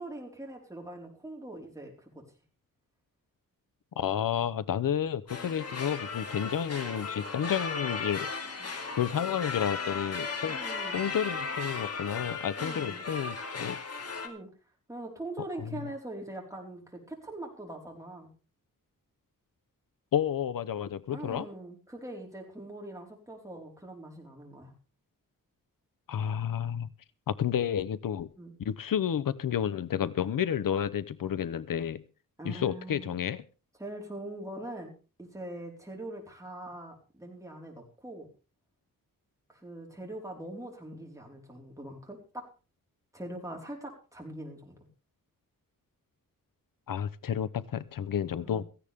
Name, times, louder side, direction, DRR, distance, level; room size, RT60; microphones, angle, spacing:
voice 1, 0.0-2.2 8.6-8.7 10.4-11.0 12.6-13.1 14.2-14.5 14.9-18.3 21.1-24.7 28.4-28.5 32.4-33.1 33.8-34.9 35.2-38.3 39.5-42.5 43.1-44.7 48.4-48.6, right 1 dB, 10° right, 0 dB, 4.5 m, -42 dB
voice 2, 4.0-8.3 9.0-10.6 10.9-13.8 20.1-21.5 26.1-26.9 27.3-28.3 28.6-32.0 32.4-33.4 46.9-48.6, left 9 dB, 75° left, 17 dB, 0.8 m, -31 dB
sound 1, 5.3-14.3, left 4 dB, 45° left, 2.5 m, -36 dB
17.0 x 15.0 x 3.6 m, 0.35 s
wide cardioid pair, 150°, 33 cm